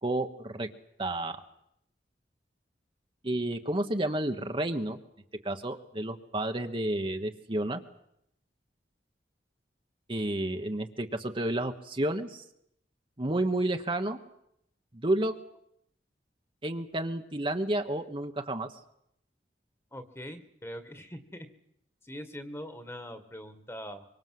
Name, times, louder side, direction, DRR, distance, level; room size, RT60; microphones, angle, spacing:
voice 1, 0.0-0.7 1.0-1.4 3.2-5.0 5.4-7.8 10.1-12.4 13.2-14.2 14.9-15.4 16.6-18.7, right 1 dB, 30° right, 5 dB, 1.3 m, -31 dB
voice 2, 19.9-21.5 22.0-24.0, equal, 15° left, 10 dB, 1.9 m, -42 dB
24.5 x 24.0 x 7.8 m, 0.76 s
head